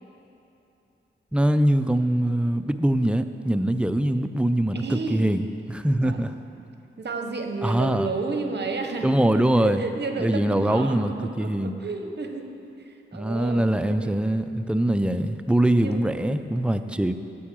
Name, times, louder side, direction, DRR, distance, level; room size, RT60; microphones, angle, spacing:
voice 1, 1.3-6.3 7.6-8.1 9.0-9.8 10.2-11.8 13.1-17.1, right 1 dB, 5° right, 9 dB, 0.4 m, -23 dB
voice 2, 4.7-5.3 6.0-6.2 7.0-12.5 12.8-14.2 15.8-16.8, right 3 dB, 55° right, 4 dB, 0.9 m, -32 dB
8.5 x 4.6 x 7.3 m, 2.9 s
cardioid pair, 40°, 21 cm